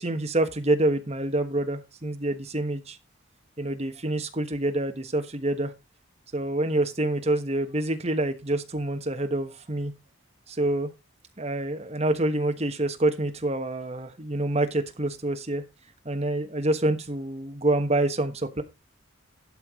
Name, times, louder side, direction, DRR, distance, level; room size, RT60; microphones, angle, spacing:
voice 1, 0.0-3.0 3.6-5.7 6.3-9.9 10.5-10.9 11.4-15.6 16.0-18.6, right 1 dB, 30° right, 6 dB, 1.3 m, -27 dB
12.0 x 4.7 x 4.9 m, 0.26 s
head